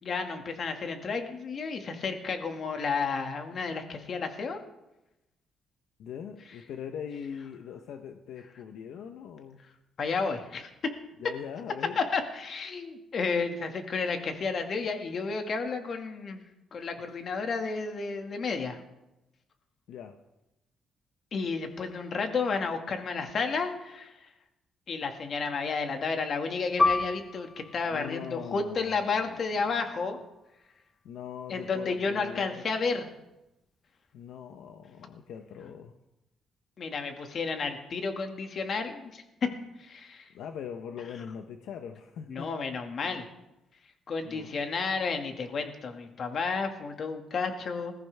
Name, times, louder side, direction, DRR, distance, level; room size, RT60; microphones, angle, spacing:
voice 1, 0.0-4.6 10.0-10.7 12.0-16.4 16.7-18.8 21.3-24.1 24.9-30.2 31.5-33.1 36.8-39.2 39.8-40.3 42.3-43.3 44.1-47.9, left 4 dB, 55° left, 5 dB, 2.1 m, -32 dB
voice 2, 6.0-9.6 11.2-12.0 19.9-20.2 27.9-29.7 31.0-32.7 34.1-35.9 40.3-42.5 44.2-44.6, left 8 dB, 80° left, 6 dB, 0.9 m, -41 dB
Piano, 26.8-31.8 32.2-32.3 33.1-33.5, left 3 dB, 25° left, 1.2 m, -32 dB
20.5 x 14.5 x 3.5 m, 0.95 s
cardioid pair, 90°, 0 cm